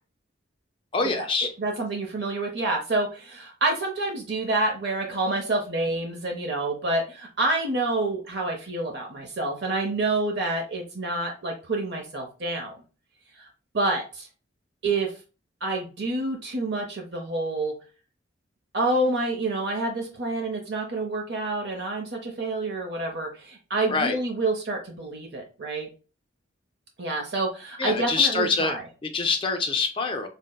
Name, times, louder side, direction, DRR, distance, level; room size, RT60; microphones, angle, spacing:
voice 1, 0.9-1.5 23.9-24.2 27.8-30.3, left 4 dB, 25° left, 5 dB, 0.4 m, -25 dB
voice 2, 1.6-12.8 13.4-13.5 13.7-14.3 14.8-15.1 15.6-17.7 18.7-25.9 27.0-28.8, right 2 dB, 60° right, 2 dB, 0.8 m, -28 dB
5.2 x 2.1 x 2.2 m, 0.34 s
head